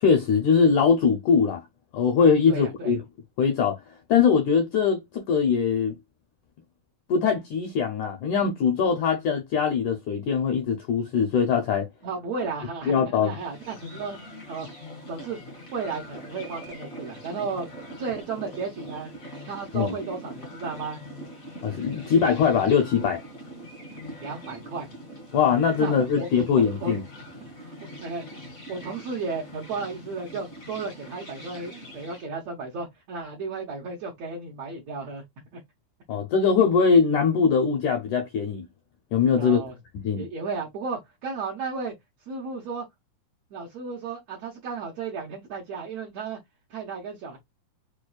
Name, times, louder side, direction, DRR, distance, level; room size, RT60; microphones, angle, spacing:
voice 1, 0.0-1.6 1.9-3.0 3.4-3.8 4.1-6.0 7.1-11.9 12.9-13.3 19.7-19.9 21.6-23.2 25.3-27.0 36.1-38.7 39.1-39.6 40.0-40.3, left 6 dB, 80° left, 1.7 m, -22 dB
voice 2, 2.5-3.0 12.0-14.2 14.5-14.7 15.1-15.4 15.7-17.7 18.0-19.1 19.4-21.0 24.2-24.9 25.8-26.9 27.2-27.7 28.0-28.2 28.7-35.2 35.5-35.6 39.4-39.8 40.1-41.9 42.3-42.8 43.5-46.4 46.7-47.4, right 4 dB, 75° right, 1.5 m, -34 dB
sound 1, 13.3-32.3, equal, 60° left, 0.8 m, -42 dB
6.1 x 2.3 x 2.3 m
omnidirectional pair, 4.2 m